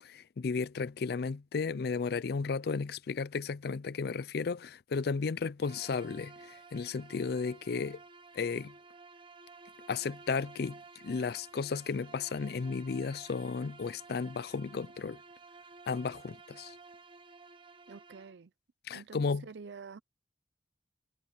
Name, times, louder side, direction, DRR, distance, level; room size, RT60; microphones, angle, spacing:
voice 1, 0.0-8.0 8.3-8.7 9.9-10.8 11.0-15.2 15.9-16.8 18.9-19.4, left 5 dB, 60° left, 0.4 m, -34 dB
Bowed string instrument, 5.6-18.4, right 4 dB, 30° right, 1.3 m, -53 dB
voice 2, 17.9-18.5 18.9-20.0, right 5 dB, 75° right, 0.5 m, -48 dB
head